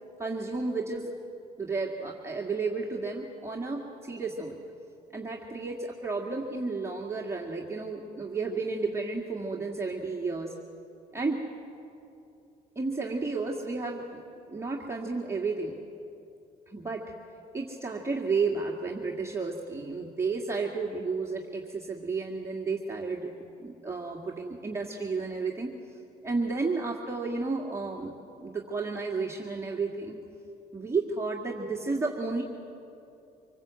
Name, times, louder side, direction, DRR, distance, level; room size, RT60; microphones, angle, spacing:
voice 1, 0.2-1.1 1.6-4.6 5.1-10.5 11.1-11.4 12.8-14.2 14.5-15.7 16.7-17.0 17.5-23.3 23.6-25.7 26.2-30.2 30.7-32.4, right 4 dB, 15° right, -2 dB, 2.0 m, -32 dB
25.5 x 19.5 x 8.3 m, 2.7 s
cardioid pair, 110°, 17 cm